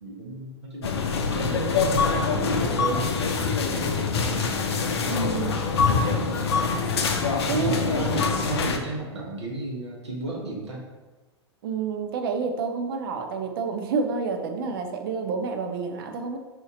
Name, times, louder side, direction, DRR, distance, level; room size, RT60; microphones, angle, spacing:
voice 1, 0.0-4.8 5.8-6.4 7.4-10.8, right 2 dB, 75° right, -2 dB, 1.2 m, -34 dB
sound 1, 0.8-8.8, left 5 dB, 65° left, 0.5 m, -24 dB
voice 2, 5.1-5.6 7.5-7.8 11.6-16.4, right 5 dB, 55° right, 5 dB, 0.6 m, -29 dB
4.3 x 2.7 x 3.7 m, 1.2 s
figure-of-eight pair, 95°, 15 cm